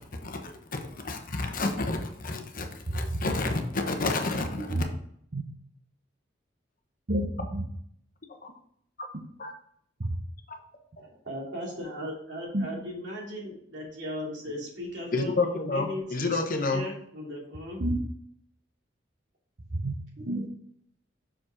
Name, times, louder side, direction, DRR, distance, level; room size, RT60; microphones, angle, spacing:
voice 1, 0.0-4.8 9.4-9.5 10.5-10.6 15.1-16.8, left 3 dB, 45° left, 4 dB, 1.0 m, -30 dB
voice 2, 7.1-7.6 10.0-10.1 12.5-12.7 17.8-18.0 19.7-20.5, right 1 dB, 50° right, 2 dB, 0.8 m, -29 dB
voice 3, 11.0-17.8, equal, 65° right, -4 dB, 3.0 m, -37 dB
6.2 x 5.1 x 5.0 m, 0.68 s
head